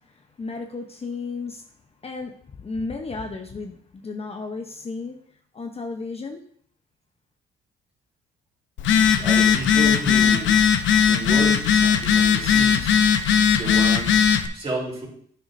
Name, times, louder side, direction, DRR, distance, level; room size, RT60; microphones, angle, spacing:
voice 1, 0.0-1.7 2.0-5.2 5.5-6.4, left 3 dB, 30° left, 4 dB, 0.7 m, -34 dB
Telephone, 8.8-14.5, left 7 dB, 75° left, 0.7 m, -18 dB
voice 2, 9.1-10.6 11.1-13.0 13.6-15.1, right 2 dB, 30° right, -3 dB, 3.5 m, -31 dB
9.4 x 6.6 x 2.6 m, 0.63 s
cardioid pair, 90°, 20 cm